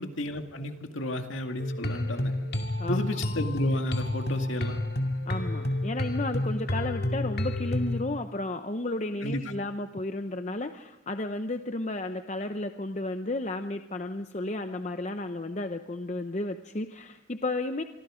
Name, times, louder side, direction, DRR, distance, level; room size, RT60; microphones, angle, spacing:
voice 1, 0.0-2.3 2.9-4.8 9.2-9.4, left 1 dB, 75° left, 5 dB, 2.1 m, -33 dB
sound 1, 1.6-8.0, left 1 dB, 55° left, 2.3 m, -30 dB
voice 2, 5.3-17.8, left 2 dB, 35° left, 7 dB, 0.7 m, -33 dB
25.5 x 25.5 x 5.1 m, 1.1 s
head